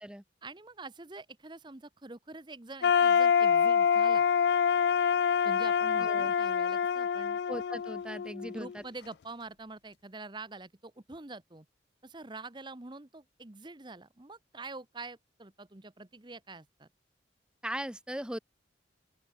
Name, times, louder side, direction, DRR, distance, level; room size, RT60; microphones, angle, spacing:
voice 1, 0.4-4.3 5.4-7.4 8.4-11.7 12.0-16.9, right 3 dB, 25° right, 0.9 m, -46 dB
sound 1, 2.8-8.7, left 7 dB, 60° left, 0.3 m, -26 dB
voice 2, 6.0-6.3 7.5-8.8 17.6-18.4, right 1 dB, 5° right, 0.8 m, -39 dB
open air
head